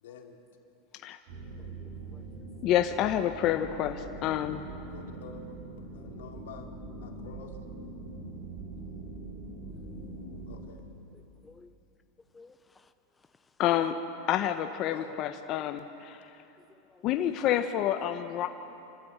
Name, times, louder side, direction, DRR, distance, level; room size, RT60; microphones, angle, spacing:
voice 1, 0.0-0.4 4.9-5.6 5.9-6.7 7.0-7.5 10.5-10.8 14.9-15.1, left 6 dB, 90° left, 2 dB, 2.6 m, -48 dB
sound 1, 1.3-10.7, right 2 dB, 65° right, 6.3 m, -43 dB
voice 2, 1.6-2.2 11.1-11.7 12.3-12.9 16.8-17.1, left 3 dB, 10° left, 9 dB, 0.5 m, -57 dB
voice 3, 2.6-4.7 13.6-14.0 14.3-16.3 17.0-18.5, left 11 dB, 40° left, 7 dB, 0.9 m, -28 dB
28.0 x 12.5 x 8.7 m, 2.9 s
supercardioid pair, 150°, 0 cm